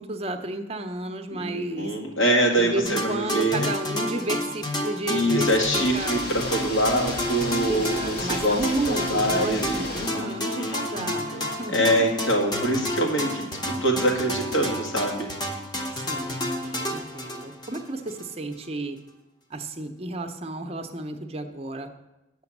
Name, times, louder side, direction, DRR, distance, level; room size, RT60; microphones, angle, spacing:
voice 1, 0.0-2.0 2.6-5.5 5.7-6.1 7.7-12.1 15.9-19.0 19.5-21.9, right 2 dB, 30° right, 7 dB, 0.6 m, -32 dB
voice 2, 1.3-3.7 5.1-8.6 8.9-10.8 11.7-15.3, right 1 dB, 80° left, 0 dB, 2.0 m, -24 dB
sound 1, 2.9-18.3, left 1 dB, 20° left, 0.8 m, -30 dB
sound 2, 5.1-10.1, left 1 dB, 50° left, 1.7 m, -36 dB
8.8 x 6.0 x 7.2 m, 0.97 s
head